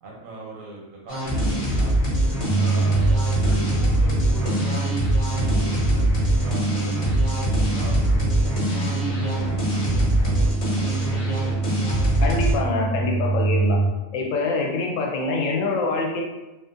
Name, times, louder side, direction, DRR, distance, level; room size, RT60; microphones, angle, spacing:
voice 1, 0.0-1.9 2.5-11.6, right 2 dB, 85° right, -3 dB, 1.2 m, -41 dB
sound 1, 1.1-12.5, equal, 40° left, 0.6 m, -23 dB
sound 2, 2.5-13.9, right 4 dB, 60° right, 0.6 m, -25 dB
voice 2, 12.2-13.8 14.1-16.2, left 3 dB, 80° left, 1 dB, 0.9 m, -25 dB
2.5 x 2.4 x 2.5 m, 1.0 s
omnidirectional pair, 1.4 m